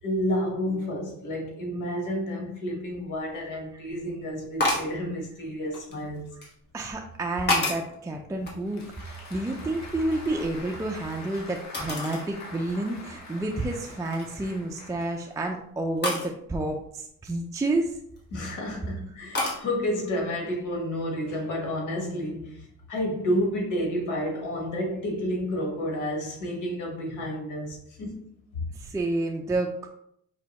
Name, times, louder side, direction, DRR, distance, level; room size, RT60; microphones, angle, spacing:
voice 1, 0.0-6.3 18.3-28.2, equal, 85° left, 1.2 m, -30 dB
sound 1, 3.1-3.2 4.6-5.0 5.7-6.5 7.1-8.0 8.4-9.5 9.8-11.1 11.7-12.3 12.8-12.9 13.5-13.7 14.1-14.5 16.0-16.3 18.0-18.5 19.3-19.6, left 2 dB, 35° left, 1.3 m, -30 dB
voice 2, 6.7-18.0 28.7-29.9, right 2 dB, 10° right, 0.4 m, -30 dB
Applause, 8.5-15.6, left 2 dB, 65° left, 1.0 m, -45 dB
4.5 x 2.9 x 2.9 m
cardioid pair, 90°, 30 cm